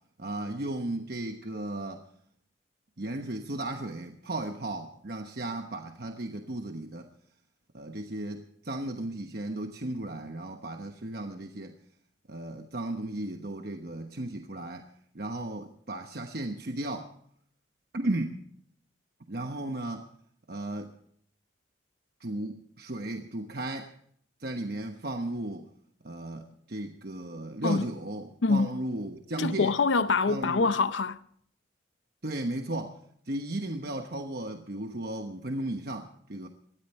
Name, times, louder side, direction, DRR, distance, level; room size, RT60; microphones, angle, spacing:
voice 1, 0.2-2.0 3.0-7.1 7.7-11.8 12.3-14.9 15.1-17.1 17.9-18.4 19.3-20.1 20.5-20.9 22.2-23.9 24.4-25.7 26.0-29.8 30.3-30.7 32.2-33.0 33.3-36.5, right 1 dB, 55° right, 1.1 m, -35 dB
voice 2, 28.4-28.7 29.4-31.2, left 4 dB, 85° left, 0.6 m, -25 dB
19.5 x 13.5 x 4.4 m
head